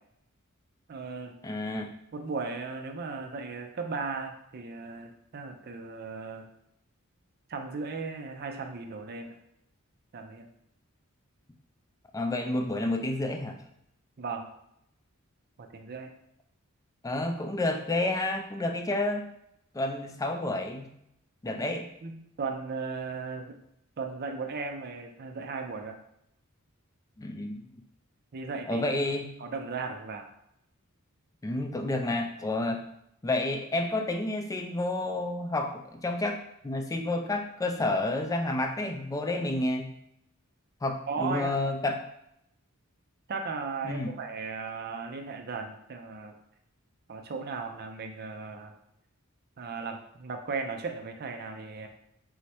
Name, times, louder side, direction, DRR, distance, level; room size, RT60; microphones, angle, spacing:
voice 1, 0.9-1.4 2.1-6.5 7.5-9.4 10.1-10.5 14.2-14.5 15.6-16.1 22.0-23.6 24.0-26.0 28.3-28.8 29.4-30.3 41.1-41.6 43.3-46.3 47.1-48.7 49.6-51.9, right 4 dB, 45° right, 5 dB, 0.5 m, -36 dB
voice 2, 1.4-1.9 12.1-13.6 17.0-19.3 19.7-20.9 21.4-21.9 27.2-27.6 28.7-29.3 31.4-32.8 33.2-39.9 40.8-42.0 43.8-44.1, left 2 dB, 15° left, 4 dB, 0.3 m, -30 dB
4.6 x 2.1 x 4.2 m, 0.77 s
head